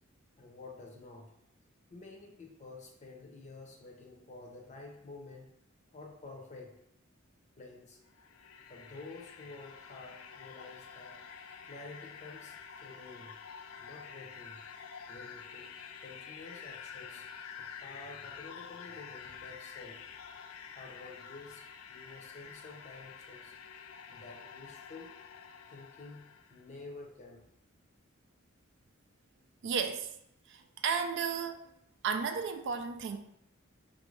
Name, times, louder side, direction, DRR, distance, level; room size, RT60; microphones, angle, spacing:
voice 1, 0.4-1.3 1.9-5.5 5.9-6.8 7.6-8.0 8.7-11.2 11.7-13.4 13.8-14.6 15.1-17.3 17.6-23.5 24.1-25.2 25.7-27.4, left 3 dB, 35° left, 0 dB, 0.7 m, -50 dB
sound 1, 8.0-26.6, left 7 dB, 85° left, 0.4 m, -49 dB
voice 2, 29.6-30.1 30.5-31.7 32.0-33.2, right 6 dB, 55° right, 7 dB, 0.3 m, -33 dB
4.3 x 2.6 x 3.2 m, 0.78 s
head